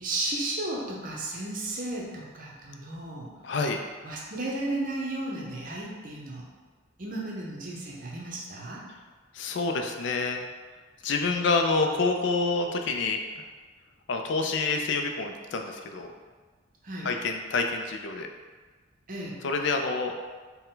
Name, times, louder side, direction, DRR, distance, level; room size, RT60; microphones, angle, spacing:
voice 1, 0.0-3.3 4.0-6.4 7.0-8.8 16.8-17.1 19.1-19.4, right 2 dB, 40° right, -3 dB, 0.7 m, -34 dB
voice 2, 3.4-3.8 9.3-10.4 11.0-13.4 14.1-16.1 17.0-18.3 19.4-20.1, left 3 dB, 60° left, 4 dB, 0.4 m, -27 dB
4.3 x 2.2 x 3.8 m, 1.4 s
head